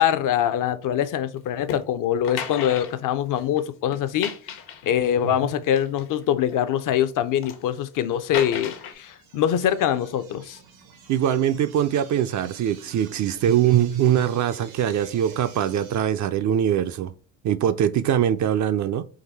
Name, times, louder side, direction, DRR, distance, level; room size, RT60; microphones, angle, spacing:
voice 1, 0.0-4.3 4.8-10.6, left 10 dB, 50° left, 0.6 m, -23 dB
sound 1, 1.7-1.8 2.2-3.6 3.9-5.2 5.7-6.8 7.2-7.6 8.3-8.9, left 7 dB, 70° left, 1.0 m, -34 dB
sound 2, 8.0-16.0, right 5 dB, 90° right, 1.2 m, -48 dB
voice 2, 11.1-17.1 17.4-19.0, right 10 dB, 45° right, 0.4 m, -22 dB
3.9 x 2.7 x 4.0 m
supercardioid pair, 70°, 41 cm